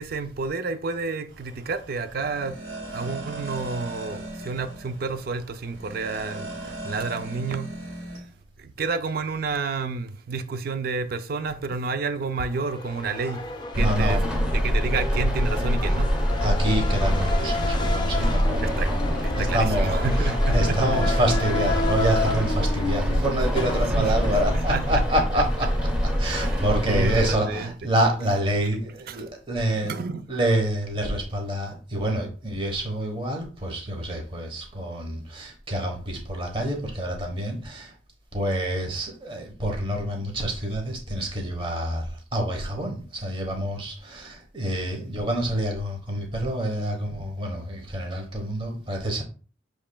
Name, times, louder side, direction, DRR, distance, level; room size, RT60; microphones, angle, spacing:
voice 1, 0.0-2.6 2.9-7.9 8.6-13.5 13.7-14.2 14.5-16.1 18.6-18.9 19.2-20.8 24.0-24.1 24.7-25.0 26.2-27.7 29.1-29.2 29.8-30.3, right 4 dB, 50° right, 0.4 m, -30 dB
sound 1, 1.3-8.2, right 2 dB, 75° right, 1.9 m, -38 dB
sound 2, 12.4-27.7, left 3 dB, 25° left, 0.5 m, -32 dB
Rain, 13.7-27.3, equal, 5° right, 0.9 m, -25 dB
voice 2, 13.8-14.7 16.4-25.7 26.2-29.9 30.3-37.9 38.3-49.2, right 1 dB, 25° right, 1.1 m, -27 dB
7.0 x 3.1 x 2.3 m
head